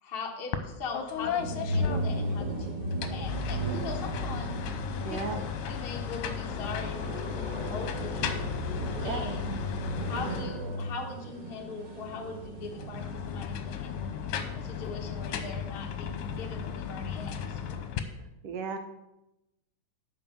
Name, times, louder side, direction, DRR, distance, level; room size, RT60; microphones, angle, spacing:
voice 1, 0.0-4.6 5.1-8.4 9.0-9.5 10.1-14.1 14.5-17.9, left 4 dB, 55° left, 1 dB, 0.6 m, -41 dB
sound 1, 0.5-0.7 0.9-2.5 2.9-11.0 12.7-18.0, left 8 dB, 90° left, 2.3 m, -35 dB
sound 2, 1.1-13.1, right 1 dB, 35° right, 0.7 m, -35 dB
voice 2, 5.0-5.4 9.0-9.3 18.4-18.8, right 5 dB, 65° right, 6 dB, 1.8 m, -34 dB
11.5 x 4.6 x 7.1 m, 0.91 s
omnidirectional pair, 3.5 m